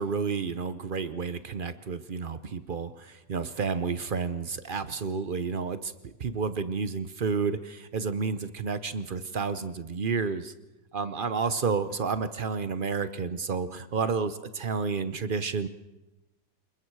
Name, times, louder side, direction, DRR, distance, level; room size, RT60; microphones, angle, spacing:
voice 1, 0.0-10.5 10.9-15.7, right 5 dB, 55° right, 12 dB, 0.5 m, -30 dB
27.5 x 22.0 x 4.7 m, 0.99 s
omnidirectional pair, 1.9 m